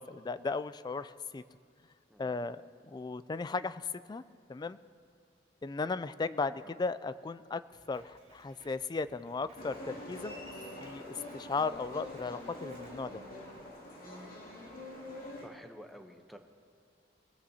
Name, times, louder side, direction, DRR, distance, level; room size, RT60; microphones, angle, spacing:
voice 1, 0.0-1.4 2.2-2.6 2.8-3.8 4.1-4.2 4.5-4.8 5.6-7.6 7.9-10.4 10.8-13.2, left 4 dB, 25° left, 14 dB, 0.3 m, -36 dB
voice 2, 2.1-2.5 6.6-6.7 14.4-14.7 15.4-16.4, equal, ahead, 5 dB, 0.8 m, -52 dB
Drum kit, 7.7-13.0, right 2 dB, 40° right, 2.1 m, -62 dB
sound 1, 9.6-15.5, left 1 dB, 55° left, 2.7 m, -45 dB
22.0 x 15.5 x 2.8 m, 2.2 s
head